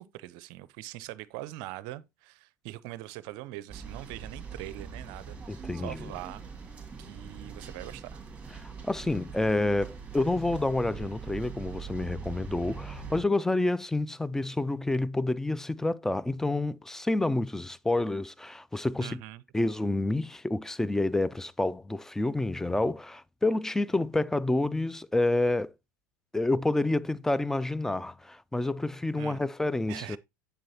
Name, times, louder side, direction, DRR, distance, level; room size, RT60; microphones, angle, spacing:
voice 1, 0.0-6.4 7.0-8.2 19.0-19.4 29.2-29.5 29.9-30.2, right 16 dB, 55° right, 0.5 m, -42 dB
sound 1, 3.7-13.2, right 6 dB, 15° right, 2.4 m, -42 dB
voice 2, 5.5-6.1 8.6-19.2 19.5-25.7 26.3-30.2, left 2 dB, 5° left, 0.3 m, -28 dB
7.5 x 6.9 x 2.8 m
hypercardioid pair, 80°, 9 cm